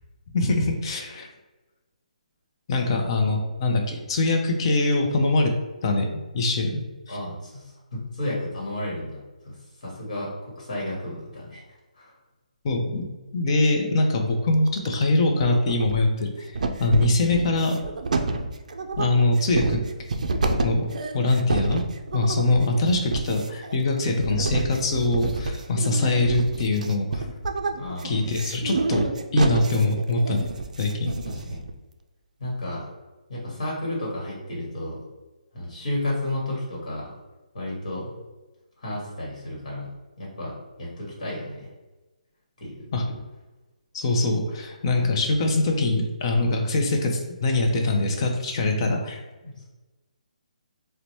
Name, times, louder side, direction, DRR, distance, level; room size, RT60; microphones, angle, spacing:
voice 1, 0.3-1.3 2.7-5.5 5.8-7.2 12.6-13.1 13.3-16.5 16.8-17.7 19.0-19.8 20.6-20.8 21.1-21.8 22.1-27.3 28.0-30.5 30.8-31.1 42.9-43.0 43.9-49.2, left 2 dB, 40° left, 2 dB, 0.6 m, -23 dB
voice 2, 7.1-11.6 11.9-12.1 17.2-17.6 27.8-28.2 31.2-31.6 32.4-32.9 33.3-35.0 35.5-37.2 37.5-38.1 38.8-39.9 40.2-40.5 40.8-41.7 42.6-42.9 49.4-49.6, left 1 dB, 55° left, -5 dB, 1.3 m, -32 dB
sound 1, 14.5-15.1 15.4-16.2 16.5-31.7, right 3 dB, 65° right, 0.4 m, -29 dB
3.8 x 2.2 x 3.0 m, 1.1 s
figure-of-eight pair, 145°, 4 cm